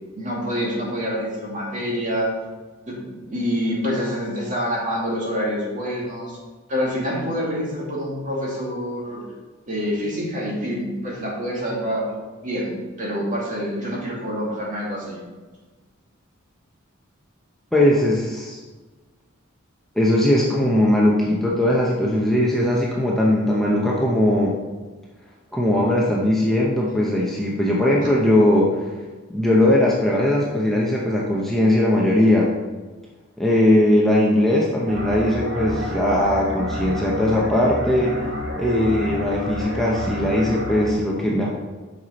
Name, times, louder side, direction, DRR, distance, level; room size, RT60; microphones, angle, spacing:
voice 1, 0.1-2.3 2.9-6.4 6.7-9.2 9.7-15.2 28.0-28.1, equal, 40° right, -4 dB, 2.2 m, -27 dB
voice 2, 17.7-18.6 20.0-24.6 25.5-29.0 29.3-32.5 33.4-38.3 38.6-41.6, left 1 dB, ahead, -5 dB, 0.8 m, -19 dB
sound 1, 34.9-40.9, equal, 60° right, 1.1 m, -29 dB
7.9 x 5.9 x 4.1 m, 1.3 s
head